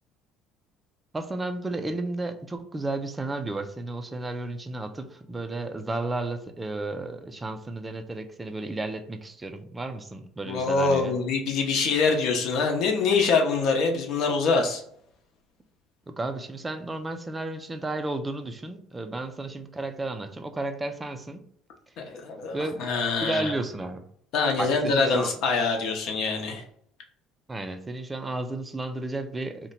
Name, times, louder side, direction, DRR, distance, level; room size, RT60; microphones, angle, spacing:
voice 1, 1.1-11.2 16.1-21.4 22.5-22.9 23.2-24.1 24.6-25.3 27.5-29.7, right 2 dB, 15° right, 6 dB, 0.3 m, -33 dB
voice 2, 10.4-14.8 22.0-23.5 24.3-26.6, left 4 dB, 60° left, 1 dB, 0.7 m, -24 dB
2.7 x 2.1 x 4.0 m, 0.67 s
cardioid pair, 125°, 0 cm